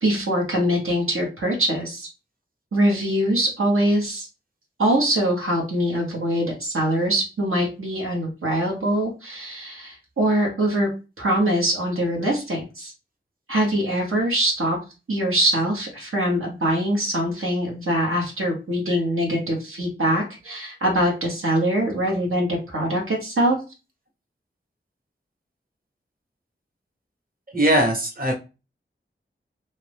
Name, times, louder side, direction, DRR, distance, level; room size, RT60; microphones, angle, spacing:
voice 1, 0.0-2.1 2.7-4.3 4.8-10.9 11.2-12.9 13.5-14.8 15.1-23.6, right 1 dB, 85° right, -2 dB, 1.0 m, -23 dB
voice 2, 27.5-28.3, right 1 dB, 45° right, 0 dB, 1.1 m, -20 dB
2.8 x 2.4 x 3.4 m, 0.30 s
wide cardioid pair, 45°, 21 cm